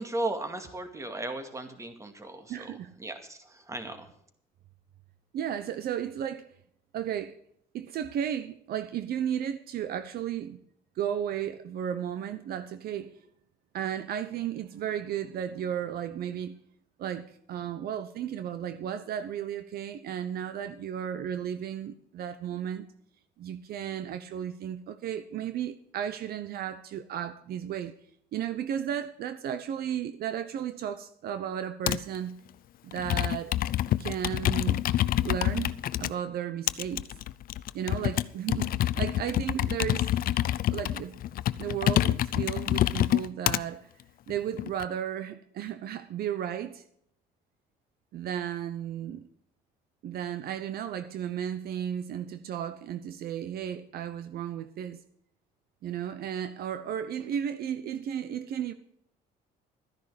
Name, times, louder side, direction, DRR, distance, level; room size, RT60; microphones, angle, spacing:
voice 1, 0.0-2.7 3.0-4.1, right 2 dB, 20° right, 2.3 m, -36 dB
voice 2, 2.5-2.9 5.3-6.5 6.9-7.4 7.7-10.6 11.0-13.3 13.7-16.6 17.0-22.8 23.4-27.9 28.3-32.4 32.8-33.6 34.0-34.8 35.2-35.7 36.0-37.1 37.7-40.2 40.7-41.2 41.6-43.9 44.3-46.8 48.1-49.2 50.0-55.0 55.8-58.7, right 9 dB, 65° right, 0.9 m, -34 dB
Computer keyboard, 31.9-32.2 32.9-36.1 36.7-43.6 44.3-44.8, left 13 dB, 60° left, 0.6 m, -27 dB
13.5 x 10.5 x 5.1 m
cardioid pair, 110°, 17 cm